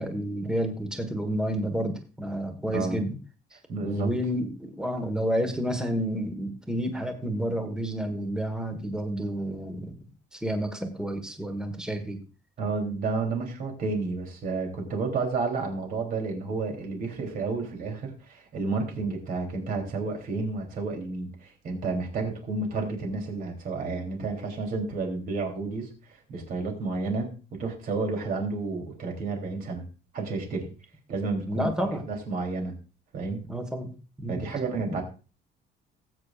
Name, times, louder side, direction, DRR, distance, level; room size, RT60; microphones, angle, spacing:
voice 1, 0.0-3.2 3.8-12.2 31.5-32.0 33.5-33.9 34.2-34.5 34.9-35.0, equal, 5° right, 5 dB, 1.4 m, -30 dB
voice 2, 3.7-4.1 12.6-25.9 26.3-27.3 27.6-29.8 30.1-30.7 31.1-32.7 33.1-33.5 34.3-35.0, right 3 dB, 50° right, 2 dB, 3.2 m, -31 dB
18.5 x 8.5 x 2.4 m, 0.34 s
cardioid pair, 170°, 18 cm